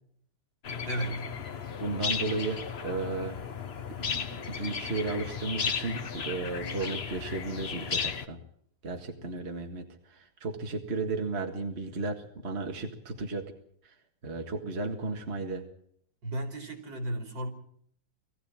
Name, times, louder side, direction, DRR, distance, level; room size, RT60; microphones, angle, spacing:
sound 1, 0.6-8.3, left 6 dB, 40° left, 1.0 m, -35 dB
voice 1, 0.9-1.3 16.2-17.5, right 1 dB, 70° right, 5 dB, 3.8 m, -34 dB
voice 2, 1.8-3.4 3.9-8.4 8.8-13.5 13.8-14.0 14.2-15.6, right 3 dB, 35° right, 4 dB, 2.0 m, -34 dB
21.0 x 15.0 x 8.8 m, 0.68 s
omnidirectional pair, 2.1 m